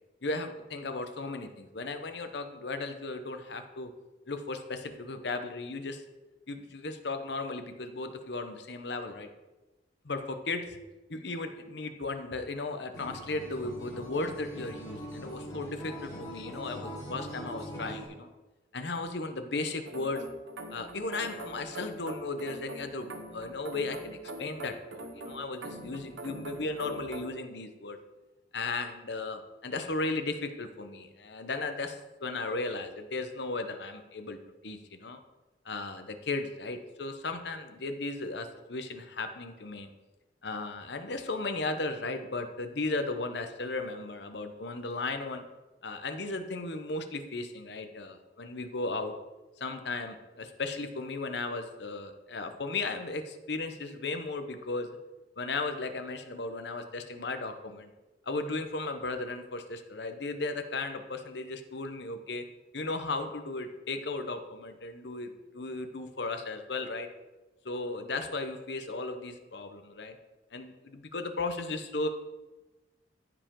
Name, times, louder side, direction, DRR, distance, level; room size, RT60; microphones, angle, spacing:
voice 1, 0.2-3.9 4.3-6.0 6.5-9.3 10.0-10.8 11.1-18.3 18.7-20.2 20.7-28.0 28.5-34.4 34.6-35.2 35.6-39.9 40.4-45.4 45.8-49.1 49.6-54.9 55.4-57.9 58.3-62.4 62.7-67.1 67.6-70.2 70.5-72.1, left 3 dB, 70° left, 7 dB, 0.9 m, -36 dB
Acoustic guitar, 12.9-18.1, equal, 20° left, 2.8 m, -42 dB
sound 1, 19.9-27.3, right 2 dB, 90° right, 1.1 m, -43 dB
14.5 x 4.9 x 3.8 m, 1.1 s
head